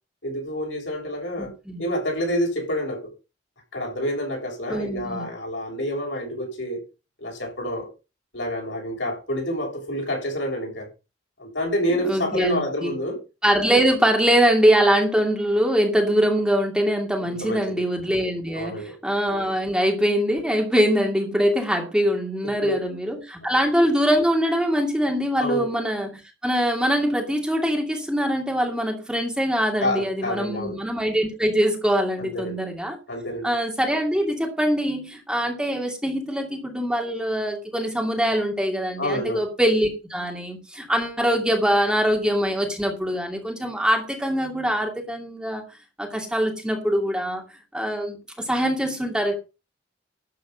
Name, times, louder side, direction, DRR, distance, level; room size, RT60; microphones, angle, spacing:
voice 1, 0.2-1.5 1.8-3.1 3.7-6.8 7.2-7.9 8.3-10.9 11.4-13.2 17.2-17.9 18.5-19.0 22.6-23.0 25.4-25.7 29.8-30.8 32.2-32.6 33.1-33.5 39.0-39.5, equal, 70° left, 7.5 m, -28 dB
voice 2, 1.4-1.8 4.7-5.2 12.0-12.9 13.4-33.0 33.4-45.6 46.0-47.4 47.7-49.3, equal, 5° right, 2.5 m, -23 dB
12.5 x 8.5 x 5.4 m
head